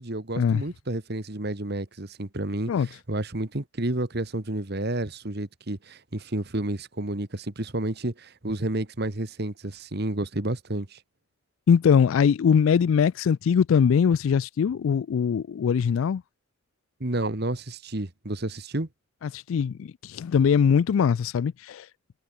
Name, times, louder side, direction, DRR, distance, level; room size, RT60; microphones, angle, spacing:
voice 1, 0.0-11.0 17.0-18.9, right 1 dB, 50° right, 1.7 m, -30 dB
voice 2, 11.7-16.2 19.2-21.9, left 7 dB, 70° left, 0.3 m, -22 dB
head